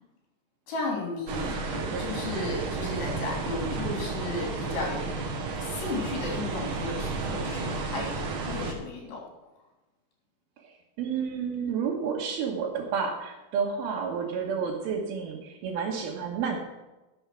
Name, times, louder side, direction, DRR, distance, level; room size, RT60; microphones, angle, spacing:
voice 1, 0.7-5.1 5.6-9.2, left 2 dB, 75° left, -1 dB, 5.1 m, -34 dB
sound 1, 1.3-8.7, right 3 dB, 65° right, 1.3 m, -32 dB
voice 2, 10.6-16.6, right 6 dB, 90° right, -4 dB, 3.2 m, -30 dB
11.5 x 7.3 x 6.1 m, 1.1 s
omnidirectional pair, 4.3 m